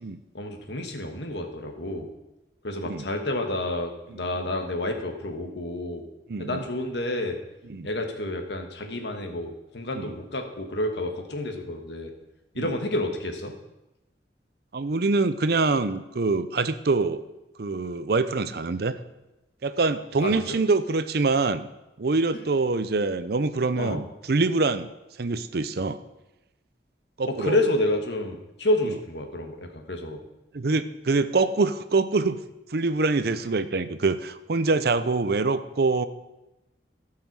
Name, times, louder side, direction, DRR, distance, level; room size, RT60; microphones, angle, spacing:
voice 1, 0.3-2.1 2.6-6.0 6.4-7.4 7.8-12.1 12.5-13.5 20.2-20.6 22.3-22.4 23.8-24.0 27.3-30.2, left 1 dB, 75° left, 4 dB, 1.5 m, -29 dB
voice 2, 6.3-6.6 7.7-7.9 9.9-10.1 12.6-12.7 14.7-17.2 17.6-19.0 19.6-21.7 22.0-24.9 25.2-26.0 27.2-27.6 30.5-32.4 32.7-36.1, right 3 dB, 60° right, 12 dB, 0.6 m, -25 dB
16.5 x 5.7 x 4.7 m, 0.95 s
head